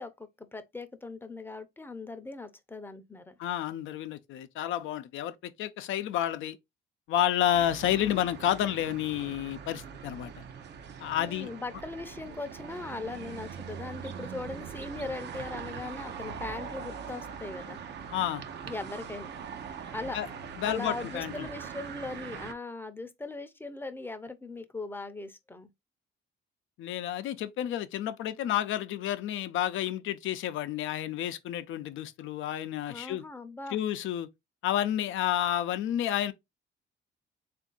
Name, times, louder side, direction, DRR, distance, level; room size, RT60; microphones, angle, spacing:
voice 1, 0.0-3.3 11.1-17.8 18.7-19.3 19.9-20.2 20.6-25.7 32.9-33.8, left 3 dB, 10° left, 0.6 m, -39 dB
voice 2, 3.4-6.6 7.1-10.3 11.0-11.5 18.1-18.4 20.1-20.3 20.6-21.5 26.8-33.2 33.7-34.3 34.6-36.3, left 11 dB, 80° left, 0.5 m, -30 dB
sound 1, 7.5-22.5, right 7 dB, 60° right, 0.6 m, -42 dB
3.5 x 2.5 x 3.8 m
cardioid pair, 90°, 20 cm